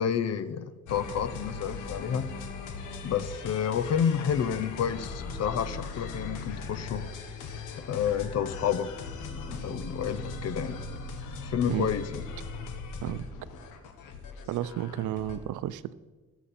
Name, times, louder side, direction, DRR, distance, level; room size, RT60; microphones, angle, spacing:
voice 1, 0.0-2.3 3.0-7.0 7.9-8.9 9.5-10.8 11.4-12.2, left 8 dB, 55° left, 14 dB, 0.8 m, -29 dB
sound 1, 0.9-15.4, left 4 dB, 90° left, 1.4 m, -39 dB
voice 2, 14.5-15.9, right 13 dB, 80° right, 16 dB, 0.6 m, -32 dB
18.0 x 7.2 x 4.3 m, 1.3 s
cardioid pair, 90°, 30 cm